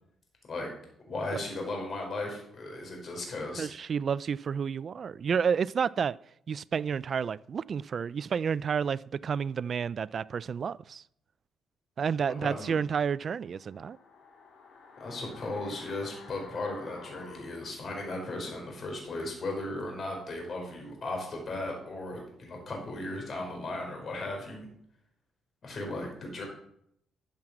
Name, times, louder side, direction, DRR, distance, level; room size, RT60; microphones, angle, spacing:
voice 1, 1.1-3.7 12.3-12.8 15.0-24.7 25.6-26.4, left 2 dB, 50° left, 4.6 m, -36 dB
voice 2, 3.6-6.2 6.5-11.0 12.0-14.0, right 6 dB, 50° right, 0.3 m, -30 dB
sound 1, 13.3-18.4 18.7-18.8, left 4 dB, 75° left, 3.9 m, -52 dB
12.5 x 7.3 x 6.1 m
cardioid pair, 90°, 0 cm